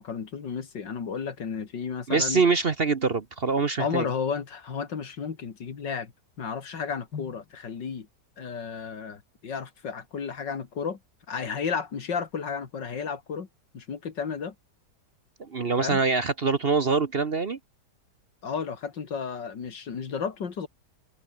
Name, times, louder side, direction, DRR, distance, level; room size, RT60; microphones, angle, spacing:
voice 1, 0.0-2.4 3.8-6.1 6.4-8.1 8.4-11.0 11.3-13.5 13.7-14.5 15.8-16.0 18.4-20.7, left 6 dB, 80° left, 2.9 m, -33 dB
voice 2, 2.1-4.0 15.4-17.6, right 4 dB, 40° right, 1.0 m, -24 dB
omnidirectional pair, 1.9 m